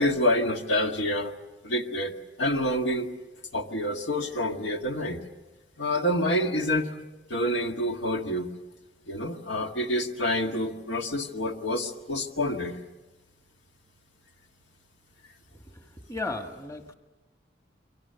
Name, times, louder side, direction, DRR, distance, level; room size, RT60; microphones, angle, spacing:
voice 1, 0.0-1.3 1.6-3.1 3.5-5.2 5.8-7.0 7.3-8.5 9.1-12.8, left 1 dB, 80° left, 4 dB, 1.7 m, -27 dB
voice 2, 15.5-16.9, left 2 dB, 20° left, 5 dB, 1.4 m, -36 dB
29.0 x 23.5 x 6.9 m, 1.1 s
head